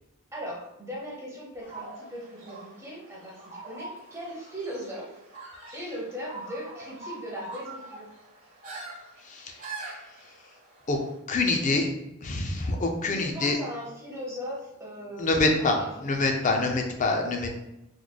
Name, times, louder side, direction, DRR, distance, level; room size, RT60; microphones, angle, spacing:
voice 1, 0.3-5.2 5.7-8.2 13.1-15.3 15.6-16.1, equal, 15° right, -4 dB, 0.8 m, -39 dB
sound 1, 1.6-11.1, right 3 dB, 40° right, 1.2 m, -44 dB
voice 2, 11.3-11.9 12.2-13.6 15.2-17.5, left 2 dB, 35° left, 3 dB, 0.5 m, -25 dB
3.9 x 3.1 x 2.2 m, 0.89 s
head